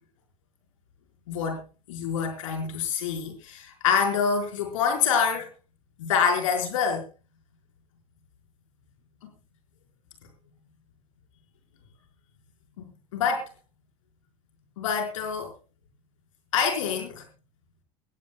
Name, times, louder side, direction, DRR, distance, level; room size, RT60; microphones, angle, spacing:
voice 1, 1.3-1.6 1.9-5.5 6.0-7.0 9.2-9.3 12.8-13.5 14.8-15.5 16.5-17.2, left 6 dB, 65° left, 4 dB, 4.8 m, -26 dB
23.0 x 17.0 x 2.3 m, 0.33 s
figure-of-eight pair, 80°, 18 cm